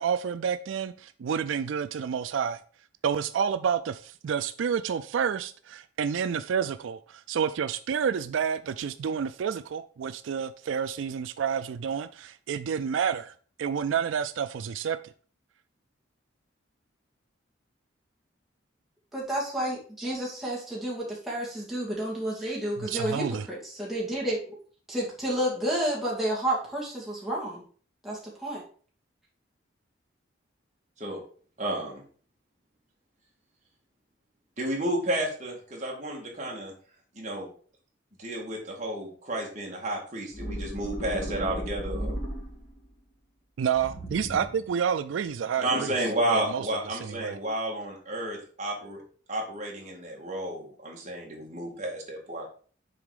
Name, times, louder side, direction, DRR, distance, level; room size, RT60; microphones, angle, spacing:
voice 1, 0.0-2.6 3.0-15.1 22.8-23.5 43.6-45.9 46.3-46.7 46.9-47.4, right 7 dB, 80° right, 12 dB, 0.4 m, -29 dB
voice 2, 19.1-24.6 24.9-27.6 28.0-28.6, right 1 dB, ahead, -6 dB, 2.5 m, -30 dB
voice 3, 31.6-32.0 34.6-36.7 37.2-37.5 38.2-42.2 45.6-49.0 49.3-52.5, right 1 dB, 35° right, -2 dB, 2.2 m, -31 dB
sound 1, 40.3-42.8 43.7-44.7, equal, 40° left, 2.1 m, -35 dB
7.0 x 4.0 x 4.9 m, 0.43 s
head